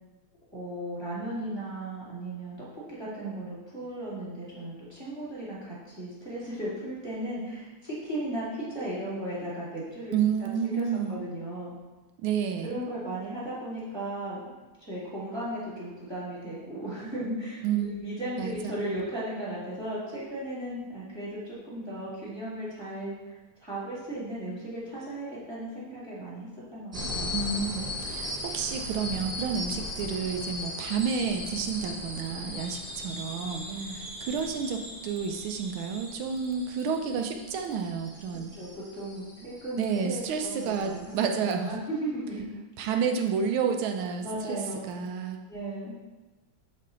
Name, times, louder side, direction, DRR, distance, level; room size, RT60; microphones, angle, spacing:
voice 1, 0.5-10.1 10.4-11.7 12.6-14.5 14.9-27.3 33.7-34.0 38.3-41.1 41.4-42.4 42.8-43.0 44.2-44.9 45.5-45.9, right 1 dB, 15° right, -9 dB, 1.6 m, -36 dB
voice 2, 10.1-11.2 12.2-12.8 17.6-17.9 18.4-18.7 27.3-33.7 34.2-38.5 39.8-41.7 42.8-45.4, right 6 dB, 75° right, 5 dB, 1.4 m, -30 dB
sound 1, 26.9-41.2, left 1 dB, 40° right, 0.5 m, -38 dB
8.3 x 3.3 x 3.8 m, 1.2 s
omnidirectional pair, 2.4 m